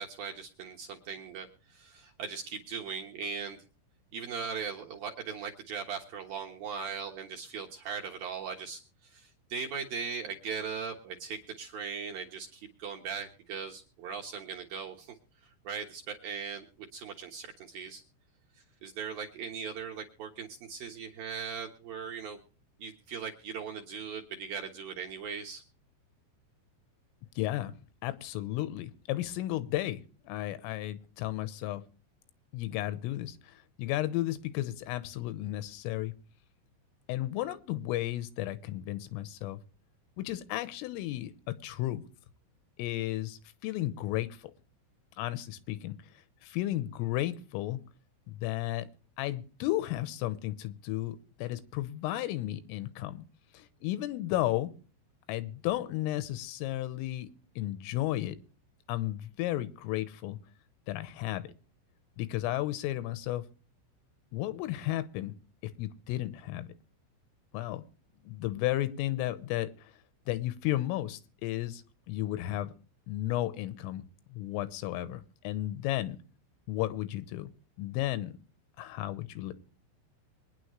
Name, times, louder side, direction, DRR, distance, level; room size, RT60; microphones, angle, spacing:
voice 1, 0.0-3.6 4.1-15.2 15.4-16.7 16.9-18.0 18.8-22.4 22.8-25.6, right 6 dB, 65° right, 1 dB, 2.4 m, -39 dB
voice 2, 27.4-27.8 28.0-30.0 30.3-31.8 32.5-36.1 37.1-39.6 40.2-42.0 42.8-44.4 45.2-46.0 46.4-47.8 48.3-48.9 49.2-53.3 53.5-54.7 55.3-57.3 57.6-58.4 58.9-60.4 60.9-61.5 62.2-63.5 64.3-65.3 65.8-66.7 67.5-67.8 68.3-69.9 70.3-71.8 72.1-72.7 73.1-74.0 74.3-76.2 76.7-77.5 77.8-78.3 78.8-79.5, left 15 dB, 85° left, 13 dB, 3.5 m, -33 dB
23.5 x 10.0 x 3.2 m, 0.37 s
omnidirectional pair, 5.8 m